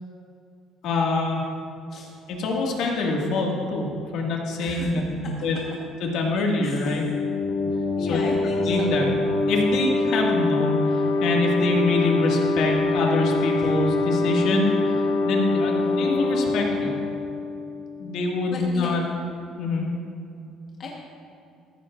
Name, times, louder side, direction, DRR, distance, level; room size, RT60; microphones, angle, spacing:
voice 1, 0.8-1.4 2.3-5.6 6.0-7.0 8.0-8.2 8.6-9.2 9.5-14.7 15.3-17.0 18.0-19.0 19.6-19.9, left 2 dB, 65° left, -1 dB, 1.9 m, -25 dB
sound 1, 6.9-18.3, left 3 dB, 90° left, 1.5 m, -24 dB
voice 2, 8.0-9.2 15.8-16.1 18.5-18.9 20.8-20.9, left 3 dB, 40° left, -3 dB, 1.2 m, -35 dB
14.5 x 14.0 x 2.5 m, 2.5 s
cardioid pair, 160°, 0 cm